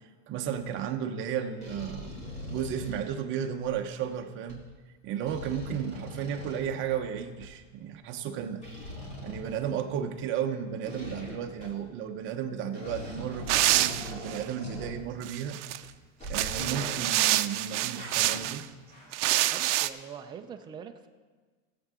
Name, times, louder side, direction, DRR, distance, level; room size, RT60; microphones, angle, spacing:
voice 1, 0.3-2.2 2.5-4.6 5.0-8.6 9.2-15.6 16.3-18.7, right 8 dB, 35° right, 5 dB, 0.9 m, -34 dB
sound 1, 0.5-0.8 1.6-4.1 4.5-4.6 5.2-7.5 8.6-10.2 10.8-11.9 12.3-12.4 12.7-15.5 15.8-15.9 16.2-17.5 17.9-19.4 19.6-19.8, left 1 dB, 20° left, 2.7 m, -42 dB
sound 2, 13.5-14.4 15.2-15.8 16.2-18.6 19.1-19.9, right 15 dB, 75° right, 0.6 m, -27 dB
voice 2, 19.5-21.1, right 7 dB, 15° right, 6 dB, 0.4 m, -43 dB
16.5 x 7.8 x 3.7 m, 1.4 s
supercardioid pair, 145°, 36 cm